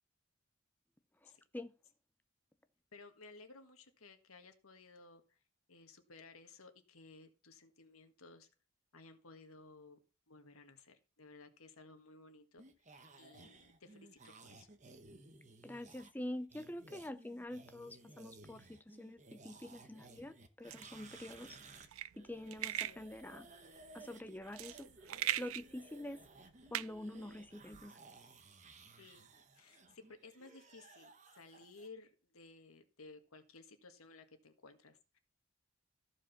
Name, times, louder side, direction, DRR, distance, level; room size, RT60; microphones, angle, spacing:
voice 1, 1.2-1.7 15.6-21.6 22.2-23.5 23.9-25.1 25.4-26.2 26.7-28.0, left 1 dB, 10° left, 0.5 m, -46 dB
voice 2, 2.9-5.4 5.7-8.5 8.9-10.0 10.3-12.6 13.2-14.7 21.1-21.5 22.7-23.0 29.0-29.3 29.5-35.2, left 3 dB, 90° left, 1.6 m, -57 dB
sound 1, 12.6-21.9 22.1-31.9, right 3 dB, 35° right, 1.0 m, -58 dB
sound 2, 20.7-27.9, right 13 dB, 80° right, 0.4 m, -42 dB
14.0 x 5.0 x 5.8 m
head